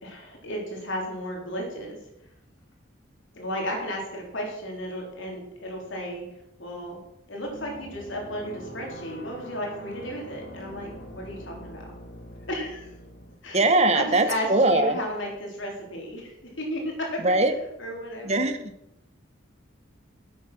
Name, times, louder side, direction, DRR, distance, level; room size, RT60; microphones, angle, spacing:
voice 1, 0.0-2.0 3.3-6.2 6.6-7.0 7.3-11.8 12.5-13.0 13.4-13.7 13.9-17.1 17.6-18.5, equal, 70° left, 0 dB, 3.8 m, -34 dB
sound 1, 7.4-13.3, equal, 50° left, 1.8 m, -43 dB
voice 2, 13.5-15.0 17.2-17.5 18.2-18.7, right 2 dB, 35° right, 9 dB, 0.9 m, -21 dB
10.0 x 8.4 x 6.2 m, 0.84 s
head